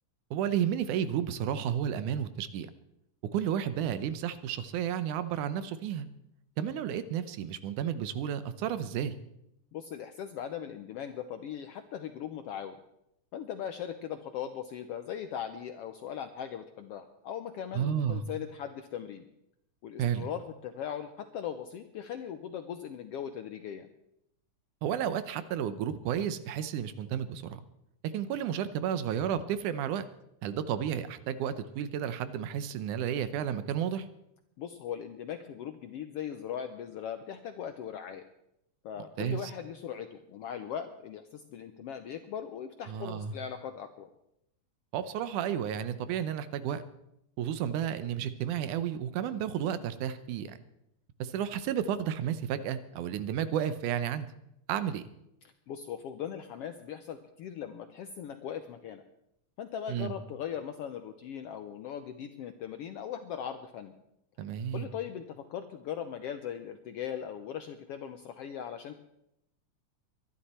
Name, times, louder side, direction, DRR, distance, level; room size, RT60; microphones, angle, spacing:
voice 1, 0.3-2.7 3.2-6.1 6.6-9.1 17.7-18.2 20.0-20.3 24.8-27.6 28.1-30.1 30.4-34.1 39.2-39.5 42.9-43.3 44.9-46.8 47.4-50.6 51.2-54.3 54.7-55.0 59.9-60.1 64.4-64.9, right 9 dB, 85° right, 13 dB, 2.3 m, -32 dB
voice 2, 9.7-12.8 13.3-19.3 19.8-23.9 34.6-38.2 38.8-44.1 55.7-59.0 59.6-63.9 64.7-69.0, left 9 dB, 75° left, 8 dB, 1.4 m, -39 dB
22.5 x 11.5 x 4.3 m, 0.82 s
omnidirectional pair, 3.5 m